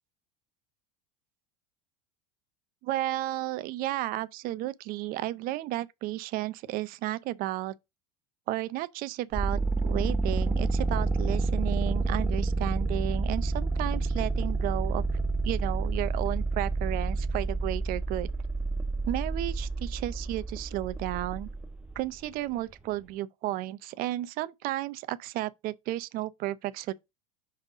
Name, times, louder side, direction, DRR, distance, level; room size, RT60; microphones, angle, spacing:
voice 1, 2.8-7.7 8.5-15.2 15.4-18.3 19.1-21.5 22.0-26.9, right 15 dB, 50° right, 0.6 m, -33 dB
sound 1, 9.3-22.0, right 3 dB, 5° right, 0.6 m, -29 dB
5.2 x 4.2 x 4.8 m
supercardioid pair, 115°, 19 cm